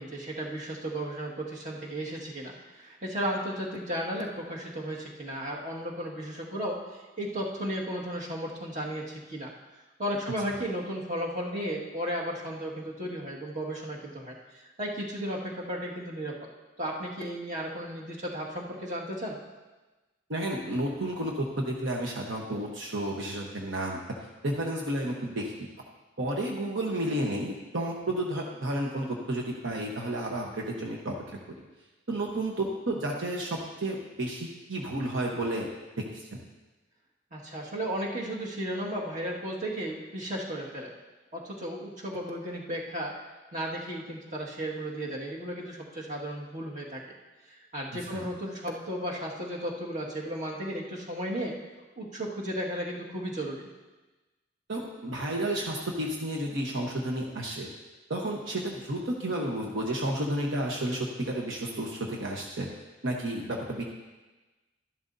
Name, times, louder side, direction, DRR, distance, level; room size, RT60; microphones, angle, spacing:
voice 1, 0.0-9.5 10.0-16.3 16.8-19.4 37.3-41.0 41.3-43.1 43.5-47.0 47.5-51.6 52.0-53.7, equal, 40° right, -3 dB, 1.9 m, -34 dB
voice 2, 20.3-24.0 24.4-25.7 26.2-31.1 31.5-31.6 32.1-35.7 36.1-36.4 48.1-48.2 54.7-57.7 58.1-62.7 63.0-63.8, right 1 dB, 75° right, -1 dB, 1.1 m, -31 dB
12.5 x 11.5 x 2.7 m, 1.2 s
head